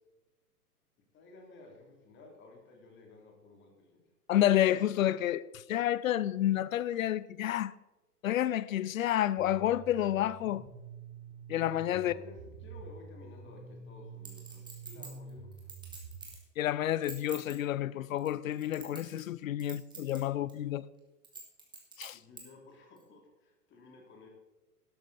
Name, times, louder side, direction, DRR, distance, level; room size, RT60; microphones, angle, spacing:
voice 1, 1.1-4.0 11.9-15.7 22.1-24.3, left 3 dB, 25° left, 3.2 m, -54 dB
voice 2, 4.3-7.7 8.2-10.6 11.5-12.1 16.6-20.8 22.0-22.2, left 12 dB, 55° left, 0.6 m, -29 dB
sound 1, 9.4-16.2, right 5 dB, 30° right, 3.5 m, -48 dB
Chink clink, 14.2-16.4 16.9-17.5 18.2-19.3 19.6-20.2 20.5-20.6 21.2-22.4 23.0-23.1, right 4 dB, 10° right, 2.7 m, -46 dB
12.5 x 12.0 x 4.2 m
figure-of-eight pair, 115°, 48 cm